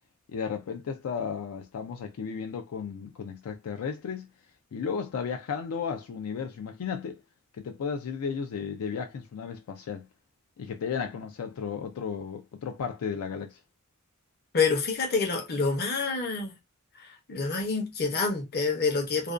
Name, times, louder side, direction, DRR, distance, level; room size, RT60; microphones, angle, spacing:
voice 1, 0.3-4.3 4.7-7.2 7.6-10.1 10.6-13.6, left 6 dB, 80° left, 0.4 m, -34 dB
voice 2, 14.5-16.5 17.0-19.3, left 4 dB, 45° left, 0.7 m, -27 dB
2.4 x 2.2 x 2.4 m
head